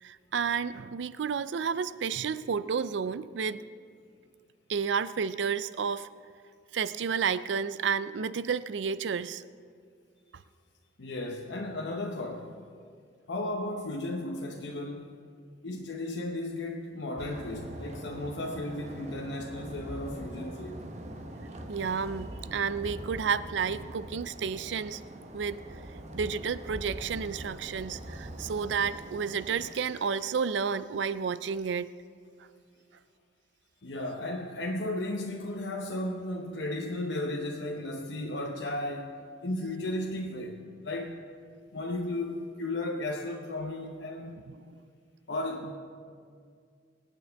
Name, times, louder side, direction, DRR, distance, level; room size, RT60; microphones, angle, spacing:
voice 1, 0.0-3.6 4.7-6.1 6.7-9.4 21.7-25.0 25.3-25.6 26.1-31.9, right 6 dB, 75° right, 15 dB, 0.4 m, -31 dB
voice 2, 11.0-12.5 13.3-15.1 15.6-20.8 33.8-39.1 39.4-41.2 41.7-44.4 45.3-45.7, left 1 dB, 75° left, 1 dB, 0.8 m, -34 dB
sound 1, 17.2-29.7, right 1 dB, 40° right, 0.9 m, -43 dB
24.5 x 9.1 x 3.5 m, 2.1 s
head